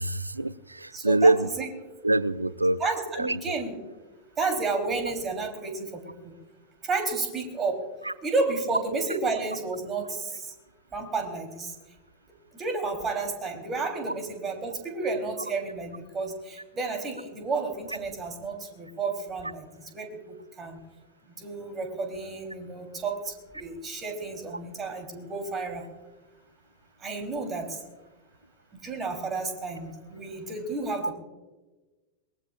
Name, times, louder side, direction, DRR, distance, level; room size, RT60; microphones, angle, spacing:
voice 1, 0.0-1.5 2.0-2.8 3.2-3.6 8.0-8.1, right 2 dB, 85° right, 19 dB, 0.4 m, -24 dB
voice 2, 0.9-1.7 2.8-3.8 4.4-6.3 6.8-7.8 8.2-10.5 10.9-11.7 12.5-19.7 19.9-20.8 21.4-25.9 27.0-27.8 28.7-31.1, right 3 dB, 20° right, 4 dB, 3.4 m, -31 dB
22.5 x 20.0 x 2.4 m, 1.2 s
figure-of-eight pair, 90°, 0 cm